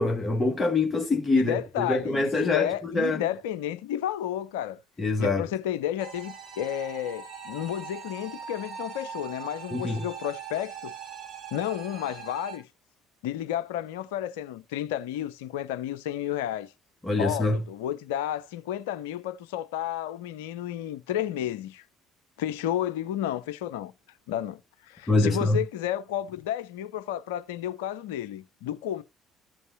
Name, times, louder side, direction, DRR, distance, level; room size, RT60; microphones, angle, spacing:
voice 1, 0.0-3.2 5.0-5.4 9.7-10.0 17.0-17.6 25.1-25.6, left 2 dB, 20° left, 1.6 m, -25 dB
voice 2, 1.3-4.8 5.2-10.9 11.5-12.7 13.2-16.7 17.2-21.8 22.4-23.9 24.3-24.6 24.9-29.0, left 11 dB, 75° left, 0.5 m, -32 dB
sound 1, 6.0-12.6, right 7 dB, 60° right, 4.1 m, -41 dB
14.5 x 5.4 x 2.7 m
figure-of-eight pair, 50°, 0 cm